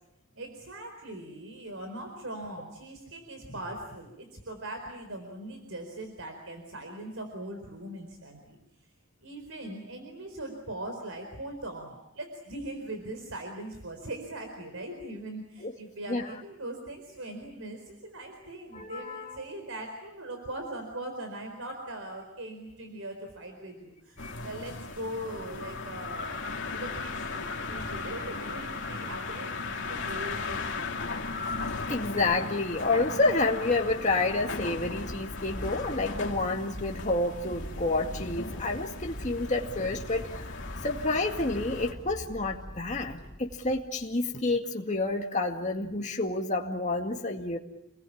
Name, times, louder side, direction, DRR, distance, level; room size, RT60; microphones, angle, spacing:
voice 1, 0.3-8.6 9.2-26.4 26.7-31.0 43.1-43.3, right 1 dB, 70° right, 4 dB, 4.5 m, -40 dB
voice 2, 18.7-19.5 24.2-24.4 31.9-40.5 40.8-47.6, left 2 dB, 35° left, 1 dB, 2.1 m, -29 dB
sound 1, 24.2-41.9, left 3 dB, 55° left, 3.0 m, -37 dB
sound 2, 33.3-44.3, left 1 dB, 20° left, 1.0 m, -43 dB
29.0 x 21.0 x 8.7 m, 0.85 s
head